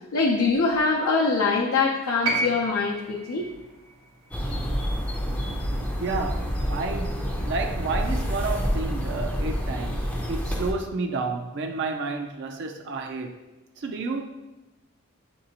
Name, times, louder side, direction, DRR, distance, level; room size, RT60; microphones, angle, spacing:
voice 1, 0.1-3.5, left 4 dB, 85° left, -4 dB, 0.5 m, -23 dB
sound 1, 2.2-6.4 7.6-7.7, right 2 dB, 90° right, 1.0 m, -33 dB
sound 2, 4.3-10.7, equal, 5° left, 0.4 m, -28 dB
voice 2, 6.0-13.5 13.8-14.2, right 3 dB, 55° right, 4 dB, 0.4 m, -31 dB
6.5 x 2.7 x 2.8 m, 1.1 s
head